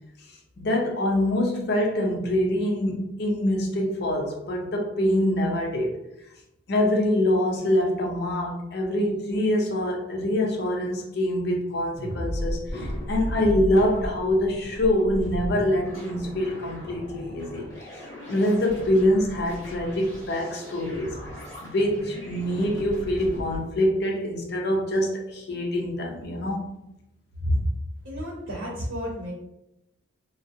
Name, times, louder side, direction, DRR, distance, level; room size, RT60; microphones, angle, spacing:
voice 1, 0.6-6.0 6.7-17.7 18.3-21.2 21.6-26.7 27.4-27.6, left 1 dB, 55° left, 0.5 m, -25 dB
sound 1, 12.0-23.6, equal, 20° left, 0.9 m, -35 dB
voice 2, 28.0-29.3, equal, 85° right, 0.7 m, -33 dB
2.4 x 2.0 x 2.6 m
head